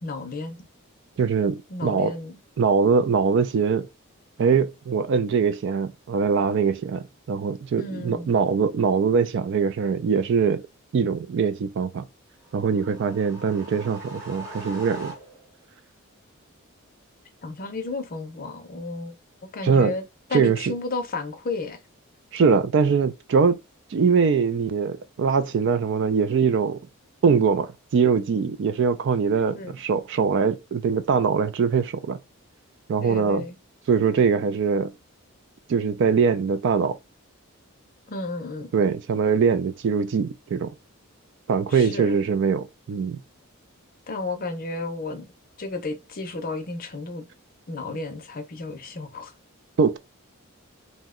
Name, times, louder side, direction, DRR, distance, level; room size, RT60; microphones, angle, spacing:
voice 1, 0.0-0.6 1.7-2.4 7.8-8.3 17.4-19.1 19.5-20.0 20.3-21.8 29.5-29.7 33.0-33.5 38.1-38.7 41.7-42.2 44.1-45.3 45.6-47.3 47.7-49.3, left 3 dB, 40° left, 0.6 m, -32 dB
voice 2, 1.2-2.1 2.6-3.9 4.4-10.6 10.9-12.1 12.5-15.1 19.6-19.9 20.3-20.7 22.3-23.6 23.9-26.8 27.2-32.2 32.9-33.4 33.9-34.9 35.7-37.0 38.7-40.7 41.5-43.2 49.8-50.0, right 5 dB, 60° right, 0.3 m, -22 dB
sound 1, 12.4-15.6, right 1 dB, 15° right, 1.0 m, -41 dB
2.7 x 2.1 x 3.6 m
head